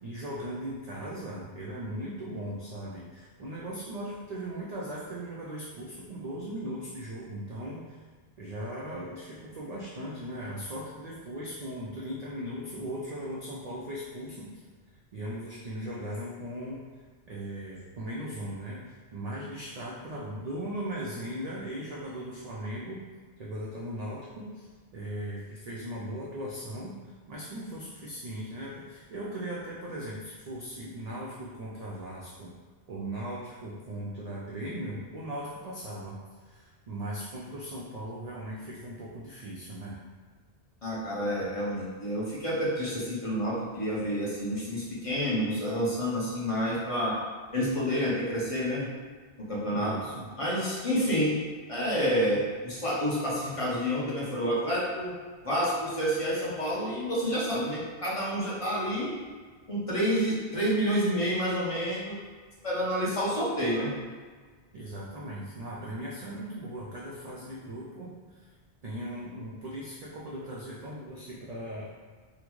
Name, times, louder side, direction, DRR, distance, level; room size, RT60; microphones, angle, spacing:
voice 1, 0.0-8.0 8.4-14.6 15.1-16.8 17.3-23.0 23.4-27.0 27.3-32.5 32.9-36.2 36.4-40.0 49.7-50.3 64.7-68.4 68.8-71.9, right 1 dB, 55° right, -6 dB, 0.4 m, -38 dB
voice 2, 40.8-47.1 47.5-48.9 49.5-49.9 50.4-51.4 51.7-55.1 55.4-59.1 59.7-62.2 62.6-63.9, equal, 35° left, -7 dB, 0.8 m, -29 dB
3.8 x 2.1 x 3.0 m, 1.5 s
omnidirectional pair, 1.1 m